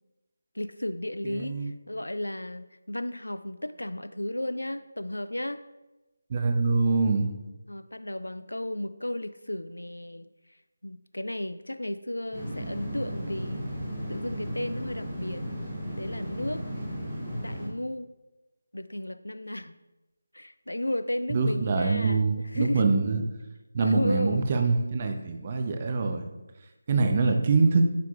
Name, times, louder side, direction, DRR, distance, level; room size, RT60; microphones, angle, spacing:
voice 1, 0.6-5.6 7.7-10.3 10.8-13.7 14.1-15.4 16.0-16.6 17.4-18.1 18.7-19.8 20.3-22.8 23.8-24.5 27.2-27.7, left 1 dB, 80° left, 13 dB, 0.3 m, -34 dB
voice 2, 1.2-1.7 6.3-7.3 21.3-23.2 23.7-26.2 26.9-27.9, right 4 dB, 30° right, 5 dB, 0.5 m, -24 dB
sound 1, 12.3-17.7, equal, 5° left, 2.1 m, -35 dB
9.1 x 4.7 x 2.3 m, 1.0 s
figure-of-eight pair, 160°, 0 cm